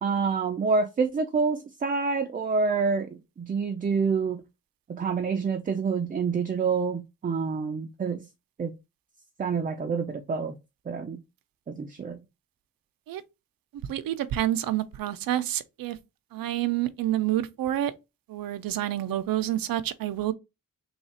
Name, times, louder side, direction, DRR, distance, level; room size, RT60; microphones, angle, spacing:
voice 1, 0.0-4.4 4.9-8.3 8.6-8.7 9.4-10.5 10.9-11.2 11.7-12.2, right 5 dB, 25° right, 0.4 m, -27 dB
voice 2, 13.9-16.0 16.3-17.9 18.3-20.3, right 13 dB, 90° right, 0.6 m, -28 dB
3.5 x 2.4 x 4.1 m
cardioid pair, 120°, 33 cm